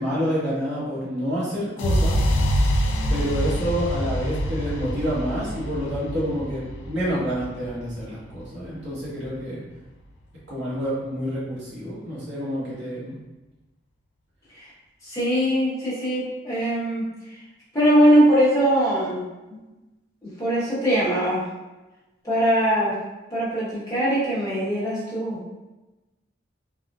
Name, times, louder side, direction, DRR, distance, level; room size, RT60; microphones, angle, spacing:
voice 1, 0.0-2.2 3.1-9.6 10.5-13.2, equal, 70° right, -8 dB, 1.1 m, -28 dB
sound 1, 1.8-9.7, equal, 80° left, 0.4 m, -26 dB
voice 2, 15.0-17.3 17.7-19.2 20.2-21.4 22.2-22.9 23.3-25.4, equal, 15° left, -10 dB, 1.0 m, -21 dB
3.5 x 2.1 x 2.4 m, 1.1 s
head